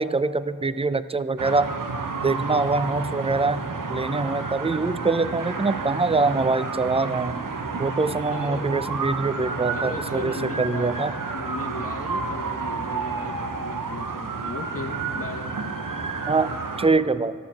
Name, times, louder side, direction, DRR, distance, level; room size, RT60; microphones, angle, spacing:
voice 1, 0.0-1.7 2.2-7.4 7.8-11.1 16.3-17.3, right 3 dB, 15° right, 15 dB, 0.3 m, -24 dB
sound 1, 1.4-16.9, right 4 dB, 65° right, 0.8 m, -30 dB
voice 2, 8.3-8.6 9.7-10.9 11.3-15.5, left 3 dB, 40° left, 5 dB, 0.9 m, -36 dB
13.0 x 6.4 x 7.3 m, 2.2 s
wide cardioid pair, 45°, 35 cm